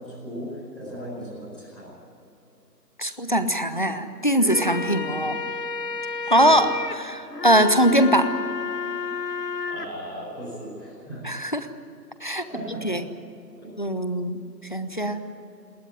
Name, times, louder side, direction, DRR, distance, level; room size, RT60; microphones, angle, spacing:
voice 1, 0.0-1.9 6.2-6.6 9.6-11.2 12.5-13.0 13.6-13.7 15.0-15.3, equal, ahead, -13 dB, 6.5 m, -37 dB
voice 2, 3.0-5.4 6.3-8.3 11.2-11.7 12.2-12.4 12.8-13.0 13.8-14.4 14.7-15.2, equal, 30° left, 11 dB, 0.8 m, -21 dB
sound 1, 4.3-9.9, left 4 dB, 70° left, 1.9 m, -31 dB
21.5 x 19.0 x 10.0 m, 2.7 s
figure-of-eight pair, 175°, 50 cm